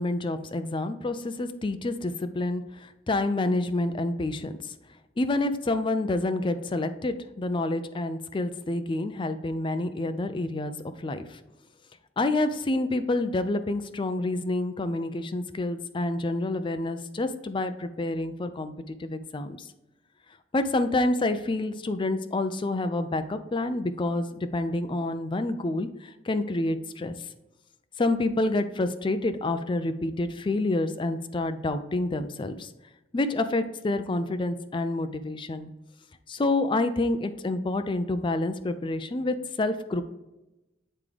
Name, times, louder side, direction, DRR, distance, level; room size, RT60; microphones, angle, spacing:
voice 1, 0.0-4.5 5.2-11.4 12.2-19.6 20.5-27.1 28.0-32.7 33.1-35.7 36.3-40.0, left 2 dB, 25° left, 9 dB, 0.4 m, -28 dB
8.7 x 3.6 x 3.3 m, 0.98 s
head